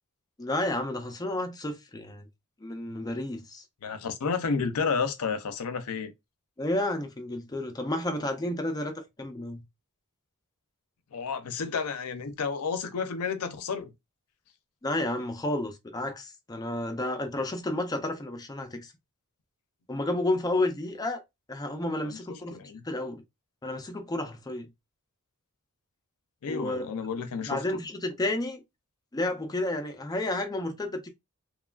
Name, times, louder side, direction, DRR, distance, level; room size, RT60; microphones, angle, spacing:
voice 1, 0.4-2.3 2.6-3.6 6.6-9.6 14.8-18.9 19.9-21.2 21.5-22.6 22.8-23.2 23.6-24.7 26.5-26.9 27.5-28.6 29.1-31.1, left 1 dB, 15° left, 0.4 m, -31 dB
voice 2, 3.8-6.1 11.1-13.9 22.0-22.8 26.4-27.6, left 5 dB, 75° left, 0.5 m, -31 dB
3.0 x 2.3 x 2.3 m
head